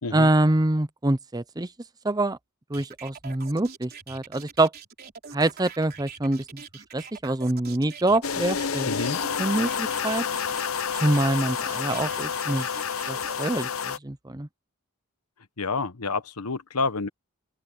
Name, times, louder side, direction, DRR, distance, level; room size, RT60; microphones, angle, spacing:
voice 1, 0.1-1.7 2.0-2.4 2.7-4.7 5.3-6.6 6.9-10.2 11.0-12.7 13.1-14.5, right 2 dB, 15° right, 0.7 m, -25 dB
sound 1, 2.7-13.4, right 6 dB, 45° right, 3.6 m, -44 dB
sound 2, 8.2-14.0, left 7 dB, 65° left, 0.8 m, -29 dB
voice 2, 8.9-9.2 15.6-17.1, left 4 dB, 85° left, 1.2 m, -28 dB
open air
head